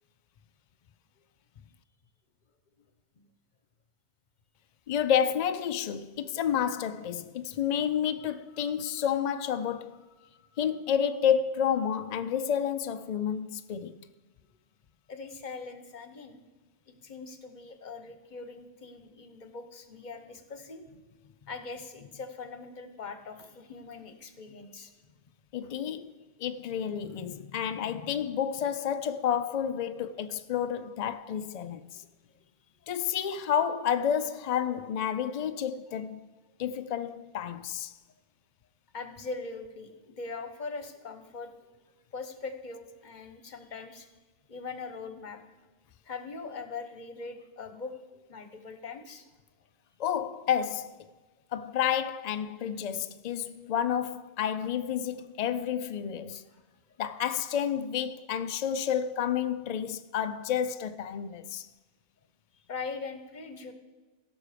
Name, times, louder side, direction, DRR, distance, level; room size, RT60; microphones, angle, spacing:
voice 1, 4.9-10.0 10.6-14.0 25.5-26.1 26.4-32.0 32.9-36.2 36.6-37.9 50.0-51.1 51.5-56.4 57.0-61.7, left 8 dB, 70° left, 0.3 m, -30 dB
voice 2, 15.1-16.4 16.8-20.8 21.5-24.9 31.8-31.9 38.9-41.5 42.1-44.1 44.5-45.4 46.0-48.0 48.3-49.3 56.5-56.6 62.5-63.7, left 4 dB, 45° left, 1.0 m, -41 dB
16.0 x 6.2 x 5.0 m
omnidirectional pair, 1.2 m